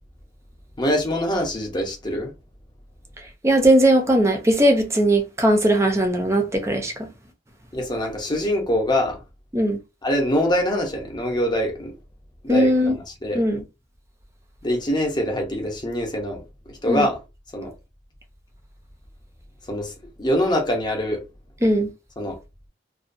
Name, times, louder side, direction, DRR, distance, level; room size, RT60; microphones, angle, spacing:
voice 1, 0.8-2.3 7.7-9.2 10.0-11.9 12.4-13.4 14.6-16.4 16.7-17.2 17.5-17.7 19.7-19.9 20.2-21.2 22.2-22.4, equal, 25° left, 0.7 m, -24 dB
voice 2, 3.4-7.1 9.5-9.8 12.5-13.0 13.3-13.6 16.9-17.1 21.6-21.9, right 1 dB, 15° right, 0.6 m, -19 dB
2.4 x 2.2 x 2.5 m
head